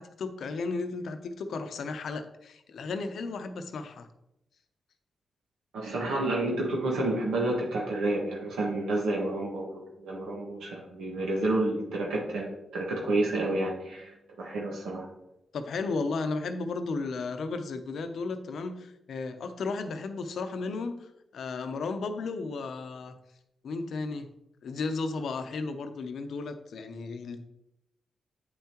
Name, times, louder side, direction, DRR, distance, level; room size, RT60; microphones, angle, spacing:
voice 1, 0.0-4.1 15.5-23.1 23.6-24.3 24.6-27.4, left 3 dB, 75° left, 8 dB, 0.7 m, -34 dB
voice 2, 5.7-15.1, right 2 dB, 85° right, -2 dB, 1.4 m, -30 dB
7.8 x 5.8 x 2.9 m, 0.86 s
supercardioid pair, 50°, 0 cm